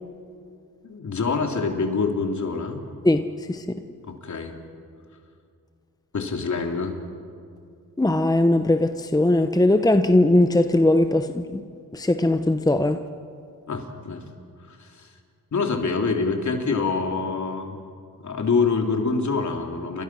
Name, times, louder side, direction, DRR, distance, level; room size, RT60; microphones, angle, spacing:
voice 1, 0.8-2.8 4.0-4.6 6.1-7.0 13.7-14.3 14.7-15.1 15.5-17.8 18.2-20.0, left 4 dB, 55° left, 3 dB, 3.4 m, -26 dB
voice 2, 3.5-3.8 8.0-11.6 11.9-13.0, left 1 dB, 10° left, 8 dB, 1.0 m, -19 dB
29.0 x 25.5 x 6.2 m, 2.3 s
cardioid pair, 80°, 35 cm